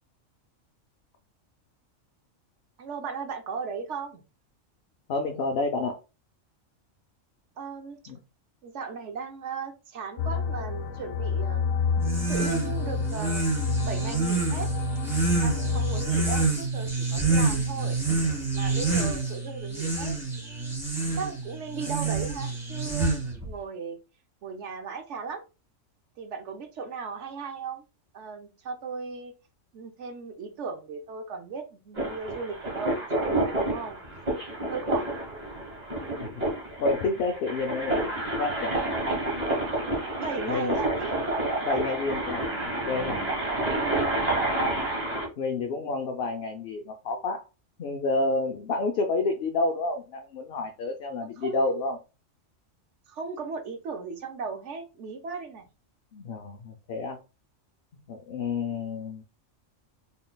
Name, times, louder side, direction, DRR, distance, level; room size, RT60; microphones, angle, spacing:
voice 1, 2.8-4.2 7.6-8.0 8.6-11.9 12.3-13.4 13.8-14.7 15.4-18.0 18.5-20.7 21.2-23.2 23.4-24.0 24.4-25.4 26.2-27.8 28.1-29.3 29.7-34.0 34.7-35.1 40.2-41.2 43.5-44.1 51.4-51.8 53.1-55.7, right 5 dB, 70° right, 6 dB, 1.0 m, -36 dB
voice 2, 5.1-6.0 8.1-8.2 36.2-36.4 36.8-38.7 40.5-40.8 41.6-43.2 45.4-47.5 47.8-52.0 56.1-57.2 58.1-59.2, left 3 dB, 60° left, 4 dB, 0.7 m, -29 dB
sound 1, 10.2-16.5, left 6 dB, 90° left, 1.0 m, -29 dB
sound 2, 12.0-23.5, right 3 dB, ahead, 1.8 m, -27 dB
sound 3, 31.9-45.3, right 2 dB, 30° right, 1.4 m, -29 dB
4.0 x 3.8 x 2.2 m, 0.30 s
omnidirectional pair, 1.4 m